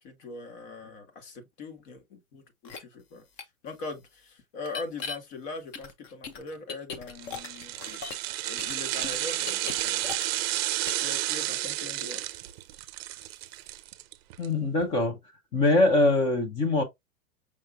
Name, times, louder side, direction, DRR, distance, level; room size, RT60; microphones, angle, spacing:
voice 1, 0.0-8.1 8.4-10.1 10.9-12.2, left 3 dB, 50° left, 1.7 m, -41 dB
sound 1, 2.7-2.8 3.4-3.5 4.6-5.2 5.7-8.3 8.6-10.6 10.9-11.1, left 5 dB, 30° left, 0.8 m, -38 dB
sound 2, 7.1-14.5 14.8-14.9, right 15 dB, 45° right, 0.6 m, -31 dB
voice 2, 14.4-15.2 15.5-16.8, left 2 dB, 10° left, 0.4 m, -23 dB
5.8 x 3.0 x 2.5 m
supercardioid pair, 145°, 43 cm